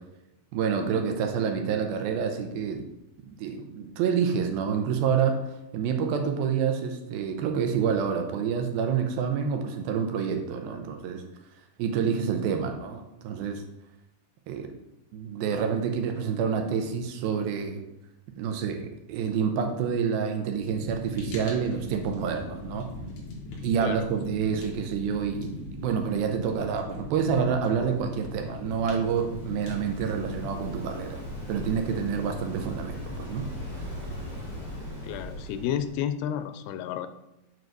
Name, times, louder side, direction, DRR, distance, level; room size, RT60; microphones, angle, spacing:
voice 1, 0.5-2.8 3.3-5.4 5.7-11.2 11.8-13.6 14.5-14.7 15.1-17.8 18.4-22.9 23.6-31.2 31.5-33.5 33.8-33.9, right 6 dB, 80° right, 5 dB, 2.5 m, -28 dB
Fire, 20.6-30.5, left 2 dB, 55° left, 2.5 m, -40 dB
Waves surf, 28.4-36.0, left 1 dB, 15° right, 2.1 m, -39 dB
voice 2, 35.0-37.1, left 9 dB, 85° left, 10 dB, 2.5 m, -31 dB
7.6 x 5.2 x 4.6 m, 0.91 s
omnidirectional pair, 4.5 m